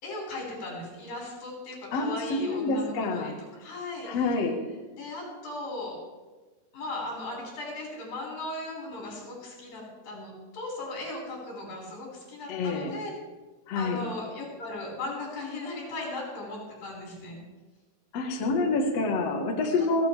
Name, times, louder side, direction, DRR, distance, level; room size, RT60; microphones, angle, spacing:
voice 1, 0.0-3.3 3.6-4.4 5.0-6.0 6.7-13.1 13.7-17.4 19.7-19.9, left 2 dB, 45° left, -2 dB, 6.8 m, -37 dB
voice 2, 1.9-3.3 4.0-4.6 12.5-12.9 13.7-14.0 18.1-20.1, left 3 dB, 70° left, 2 dB, 1.5 m, -27 dB
29.5 x 10.5 x 3.5 m, 1.3 s
omnidirectional pair, 5.5 m